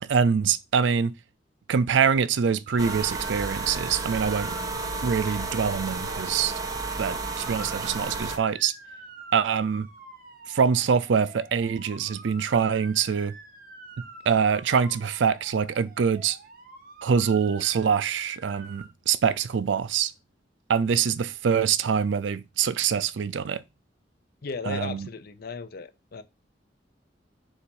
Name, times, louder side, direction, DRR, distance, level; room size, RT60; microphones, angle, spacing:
voice 1, 0.0-1.1 1.7-4.6 5.0-6.5 7.0-8.7 9.3-9.9 10.5-13.3 14.0-16.4 17.0-20.1 20.7-23.6 24.7-25.1, right 6 dB, 75° right, 0.4 m, -24 dB
Motor vehicle (road) / Siren, 2.7-18.9, right 3 dB, 50° right, 1.3 m, -46 dB
sound 1, 2.8-8.4, right 3 dB, 20° right, 0.7 m, -32 dB
voice 2, 24.4-26.2, left 4 dB, 55° left, 0.6 m, -36 dB
6.9 x 2.5 x 5.5 m
head